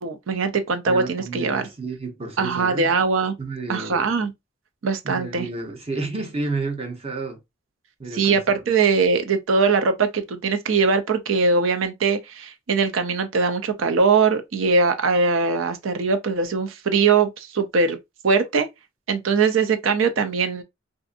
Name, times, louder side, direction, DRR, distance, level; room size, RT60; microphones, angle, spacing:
voice 1, 0.0-1.7 2.4-3.3 3.7-4.3 4.8-5.5 8.1-18.0 18.2-18.7 19.1-20.6, right 4 dB, 85° right, 0.5 m, -21 dB
voice 2, 0.9-2.9 3.4-4.1 5.0-7.4 8.0-8.6 20.2-20.3, right 3 dB, 30° right, 0.7 m, -31 dB
2.6 x 2.5 x 2.4 m
head